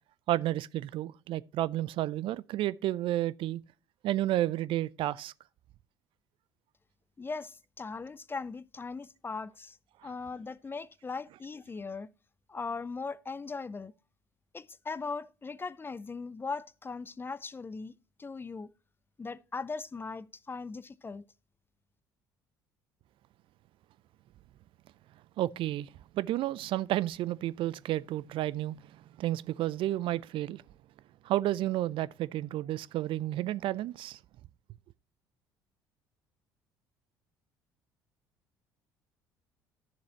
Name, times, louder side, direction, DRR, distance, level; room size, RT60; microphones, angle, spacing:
voice 1, 0.3-3.6 4.0-5.3 25.4-25.9 26.1-28.8 29.2-30.6 31.3-34.2, right 14 dB, 55° right, 0.4 m, -31 dB
voice 2, 7.2-9.8 10.0-12.1 12.5-13.9 14.5-17.9 18.2-18.7 19.2-21.2, left 4 dB, 20° left, 0.4 m, -39 dB
12.0 x 7.1 x 2.9 m
hypercardioid pair, 55°, 11 cm